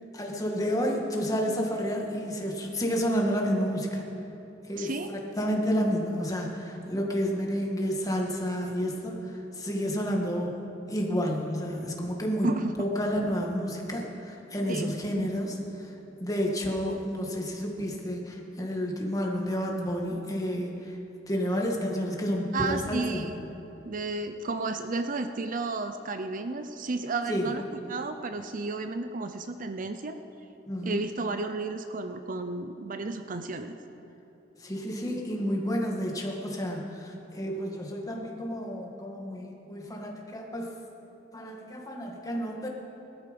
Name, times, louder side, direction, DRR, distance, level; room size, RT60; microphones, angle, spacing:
voice 1, 0.1-4.0 4.7-10.5 10.9-12.5 12.8-15.9 16.2-21.0 21.3-23.3 27.3-27.5 30.7-31.0 34.6-40.7 41.3-42.7, equal, 20° left, 0 dB, 1.9 m, -30 dB
voice 2, 4.8-5.1 12.4-12.7 14.7-14.9 22.5-23.3 23.8-27.6 27.9-30.2 30.8-33.7, right 3 dB, 45° right, 8 dB, 0.6 m, -32 dB
19.0 x 13.0 x 5.3 m, 3.0 s
head